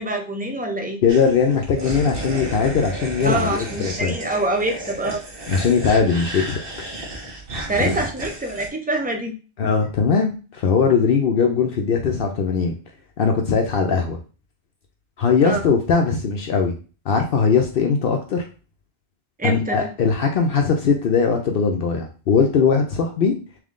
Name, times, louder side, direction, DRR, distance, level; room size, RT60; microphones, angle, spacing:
voice 1, 0.0-1.0 3.2-5.2 7.7-9.4 15.4-15.6 19.4-19.9, right 2 dB, 10° right, 3 dB, 0.5 m, -25 dB
voice 2, 1.0-4.1 5.5-6.6 7.8-8.1 9.6-12.8 13.2-14.2 15.2-16.7 17.1-18.4 19.4-23.3, left 5 dB, 65° left, 3 dB, 0.8 m, -20 dB
sound 1, 1.1-8.7, right 1 dB, 60° right, 1.4 m, -32 dB
3.6 x 3.1 x 3.7 m, 0.35 s
omnidirectional pair, 1.1 m